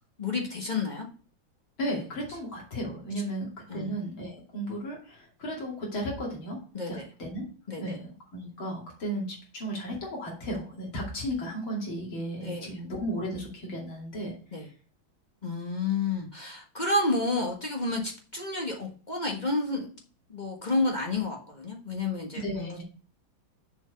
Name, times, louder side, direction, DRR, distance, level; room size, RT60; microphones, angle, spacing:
voice 1, 0.2-1.1 3.7-3.9 6.7-7.1 7.7-8.0 12.4-12.7 14.5-14.7 15.4-19.9 20.3-22.8, left 2 dB, 25° left, 0 dB, 1.3 m, -30 dB
voice 2, 1.8-6.6 6.9-7.4 7.8-14.3 22.3-22.8, equal, 75° left, -2 dB, 3.3 m, -34 dB
7.1 x 4.6 x 6.6 m, 0.40 s
omnidirectional pair, 2.2 m